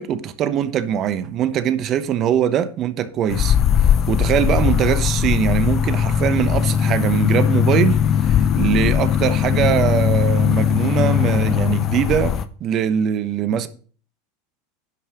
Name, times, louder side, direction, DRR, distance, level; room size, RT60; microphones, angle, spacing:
voice 1, 0.0-3.6 4.1-13.7, right 9 dB, 45° right, 1.0 m, -22 dB
sound 1, 3.3-12.4, left 8 dB, 40° left, 0.8 m, -19 dB
10.5 x 5.6 x 5.1 m
hypercardioid pair, 100°, 0 cm